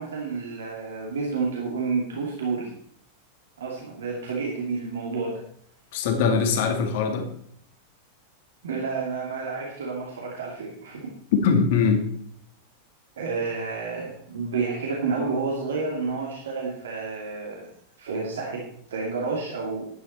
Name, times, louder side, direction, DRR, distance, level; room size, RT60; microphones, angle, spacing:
voice 1, 0.0-2.7 3.6-5.4 8.6-11.1 13.2-17.7 18.0-19.9, right 4 dB, 65° right, -2 dB, 2.5 m, -30 dB
voice 2, 5.9-7.3 11.3-12.0, left 5 dB, 50° left, 4 dB, 2.5 m, -21 dB
12.5 x 9.9 x 4.4 m, 0.66 s
figure-of-eight pair, 90°, 0 cm